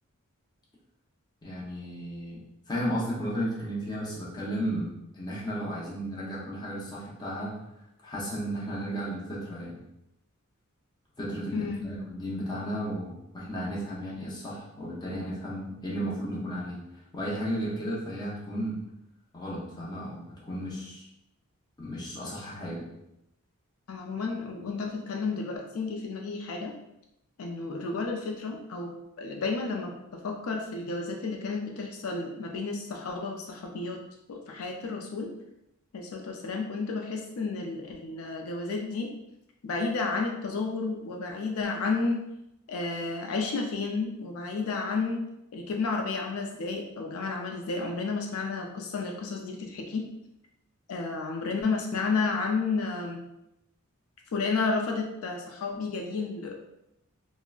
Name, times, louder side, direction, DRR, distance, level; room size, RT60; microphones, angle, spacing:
voice 1, 1.4-2.4 2.7-7.6 8.0-9.8 11.2-16.8 17.1-18.8 19.3-21.0 21.8-22.9, equal, 20° left, -5 dB, 0.7 m, -34 dB
voice 2, 11.5-11.9 23.9-26.7 27.4-34.0 34.3-35.3 35.9-39.1 39.6-42.2 42.7-45.2 45.5-50.1 50.9-53.2 54.3-56.6, left 4 dB, 80° left, 1 dB, 0.4 m, -31 dB
3.7 x 2.0 x 2.3 m, 0.87 s
head